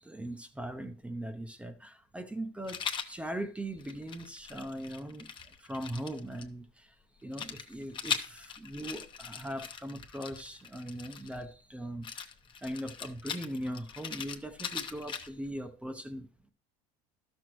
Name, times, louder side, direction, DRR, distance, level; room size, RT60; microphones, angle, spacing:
voice 1, 0.0-5.3 5.6-6.9 7.2-12.3 12.6-16.5, right 1 dB, 5° right, 0.7 m, -40 dB
Rattle, 2.7-3.1 3.8-6.4 7.3-11.4 12.0-15.5, left 7 dB, 30° left, 0.9 m, -40 dB
12.0 x 6.2 x 3.1 m
supercardioid pair, 115°, 17 cm